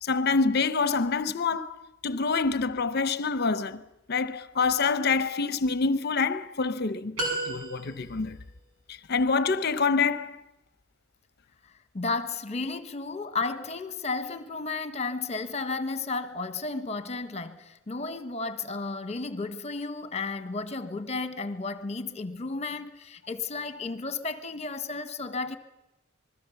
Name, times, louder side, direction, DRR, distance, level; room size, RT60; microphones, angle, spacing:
voice 1, 0.0-3.8 4.1-7.2 7.5-8.4 8.9-10.4, left 4 dB, 50° left, 0.7 m, -26 dB
sound 1, 7.2-8.3, right 2 dB, 90° right, 6.0 m, -32 dB
voice 2, 11.9-25.6, left 3 dB, 30° left, 1.3 m, -33 dB
26.5 x 21.0 x 7.1 m
head